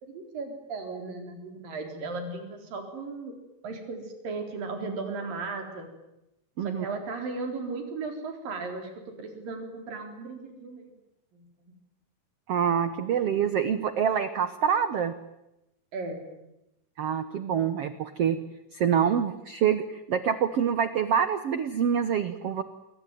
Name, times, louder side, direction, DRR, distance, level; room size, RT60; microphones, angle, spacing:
voice 1, 0.0-3.3 3.6-5.9 6.6-8.9 9.2-10.9 11.3-11.5 15.9-16.2, right 3 dB, 60° right, 5 dB, 5.8 m, -36 dB
voice 2, 12.5-15.1 17.0-18.4 18.7-22.6, right 8 dB, 90° right, 12 dB, 1.3 m, -26 dB
27.5 x 23.0 x 9.3 m, 0.91 s
omnidirectional pair, 4.5 m